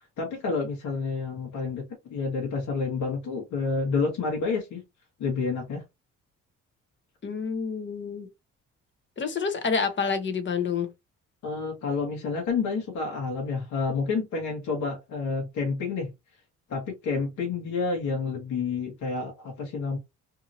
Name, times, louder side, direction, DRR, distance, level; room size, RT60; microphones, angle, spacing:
voice 1, 0.2-4.8 5.2-5.8 11.4-16.1 16.7-20.0, left 4 dB, 75° left, 1.3 m, -29 dB
voice 2, 7.2-8.3 9.2-10.9, left 5 dB, 40° left, 0.9 m, -28 dB
2.7 x 2.7 x 2.6 m
cardioid pair, 90°, 30 cm